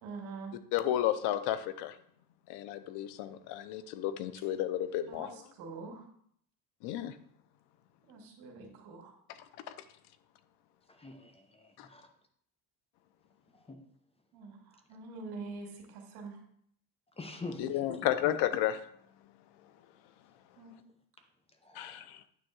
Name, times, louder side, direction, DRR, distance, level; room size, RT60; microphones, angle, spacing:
voice 1, 0.0-0.5 5.1-5.3 5.6-6.0 8.1-9.1 14.3-14.5 14.9-16.4 20.6-20.7, right 4 dB, 80° right, 2 dB, 2.2 m, -44 dB
voice 2, 0.7-2.0 2.5-5.4 6.8-7.1 11.8-11.9 17.6-18.8 21.7-22.2, left 12 dB, 90° left, 12 dB, 0.8 m, -32 dB
voice 3, 11.0-12.0 13.7-13.8 17.2-17.7 18.2-18.3 21.7-22.0, left 3 dB, 15° left, 5 dB, 0.8 m, -44 dB
9.4 x 3.5 x 6.3 m, 0.65 s
cardioid pair, 150°, 38 cm